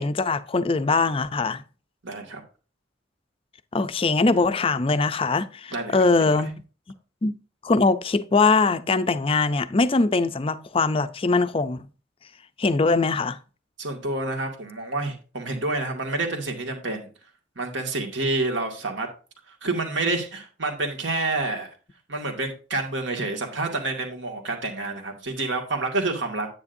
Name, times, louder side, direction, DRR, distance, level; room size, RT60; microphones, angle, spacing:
voice 1, 0.0-1.6 3.7-6.5 7.2-7.3 7.6-11.9 12.6-13.4, left 3 dB, 30° left, 0.5 m, -22 dB
voice 2, 2.0-2.4 5.7-6.4 13.8-17.1 17.6-19.1 19.5-21.7 22.1-26.5, right 2 dB, 70° right, 2.1 m, -28 dB
9.8 x 8.6 x 2.6 m
head